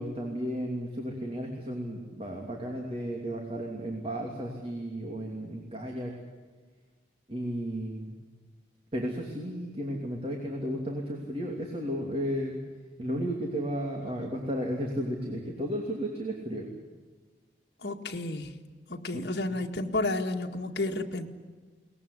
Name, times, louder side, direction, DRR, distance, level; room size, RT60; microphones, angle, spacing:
voice 1, 0.0-6.1 7.3-8.1 8.9-12.6 13.0-16.7 19.1-19.2, equal, 35° right, 0 dB, 2.9 m, -33 dB
voice 2, 17.8-18.5 18.9-21.3, left 2 dB, 60° left, 3 dB, 2.0 m, -31 dB
22.5 x 19.5 x 9.9 m, 1.4 s
head